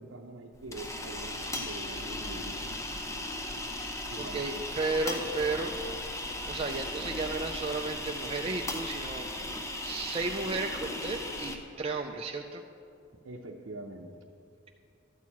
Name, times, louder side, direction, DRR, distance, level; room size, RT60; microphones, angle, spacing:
voice 1, 0.0-2.6 4.1-4.6 13.2-14.1, right 2 dB, 75° right, -1 dB, 0.7 m, -44 dB
sound 1, 0.5-11.6, left 1 dB, 15° left, 0.7 m, -37 dB
voice 2, 4.2-5.7 6.5-9.3 9.8-12.6, right 3 dB, 30° right, 2 dB, 0.4 m, -33 dB
12.0 x 4.6 x 8.4 m, 2.5 s
head